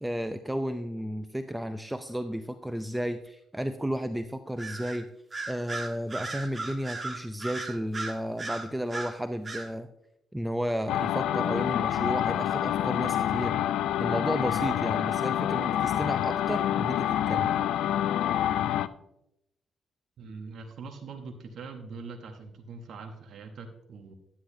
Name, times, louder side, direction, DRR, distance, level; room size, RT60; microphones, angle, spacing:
voice 1, 0.0-5.1 5.5-9.9 10.3-13.6 14.0-17.6, equal, 5° right, 9 dB, 0.4 m, -33 dB
Bird vocalization bird call bird song, 4.6-5.0 5.3-9.1 9.4-9.7, right 3 dB, 25° right, 1.4 m, -36 dB
sound 1, 10.9-18.9, left 11 dB, 85° left, 0.3 m, -27 dB
voice 2, 20.2-24.2, right 4 dB, 65° right, 5 dB, 0.9 m, -42 dB
10.0 x 9.9 x 2.6 m, 0.82 s
cardioid pair, 90°, 0 cm